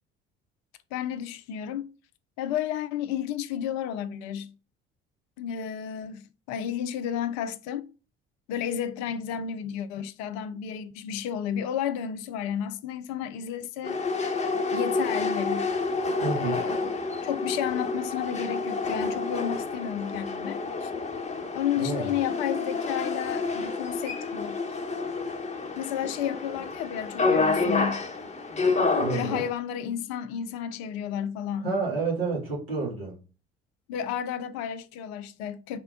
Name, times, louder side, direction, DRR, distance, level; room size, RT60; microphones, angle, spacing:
voice 1, 0.9-1.9 2.4-4.5 5.4-7.9 8.5-14.0 14.7-15.7 16.4-20.9 21.5-24.8 25.8-28.0 29.1-31.8 33.9-35.8, left 9 dB, 65° left, 0.5 m, -32 dB
sound 1, 13.8-29.5, left 3 dB, 25° left, 1.1 m, -29 dB
voice 2, 16.2-16.6 21.8-22.1 29.0-29.4 31.6-33.2, right 4 dB, 85° right, 2.0 m, -29 dB
4.3 x 2.2 x 3.6 m
hypercardioid pair, 55°, 30 cm